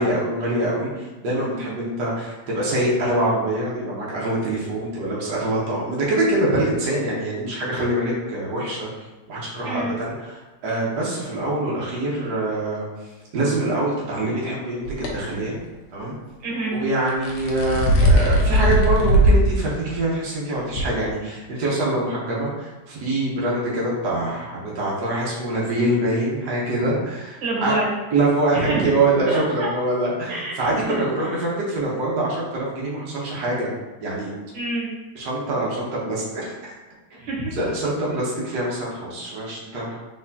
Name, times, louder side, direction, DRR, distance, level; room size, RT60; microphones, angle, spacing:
voice 1, 0.0-8.9 9.3-12.9 13.3-15.6 15.9-16.1 16.7-27.7 28.1-33.7 34.0-34.3 35.1-36.7 37.6-40.0, right 1 dB, 65° right, -6 dB, 1.6 m, -24 dB
voice 2, 9.6-10.0 16.4-16.8 27.4-28.0 28.5-28.9 29.3-29.7 30.3-31.0 34.5-34.9 37.2-37.6 38.1-38.2, right 2 dB, 85° right, -5 dB, 2.0 m, -27 dB
sound 1, 14.9-15.1 17.1-19.5 19.9-20.0 20.8-20.9, right 1 dB, 85° left, 1.5 m, -17 dB
4.2 x 4.1 x 2.8 m, 1.2 s
omnidirectional pair, 2.0 m